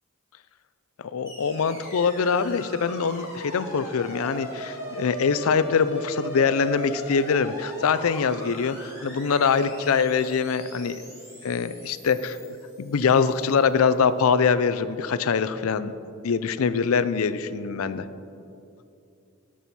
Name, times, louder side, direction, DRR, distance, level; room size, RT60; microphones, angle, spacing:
voice 1, 1.0-11.0 11.4-12.4 12.8-15.9 16.2-18.0, left 5 dB, 85° left, 13 dB, 0.5 m, -23 dB
sound 1, 1.2-13.5, equal, 15° right, 2.2 m, -40 dB
16.0 x 6.2 x 4.2 m, 2.6 s
head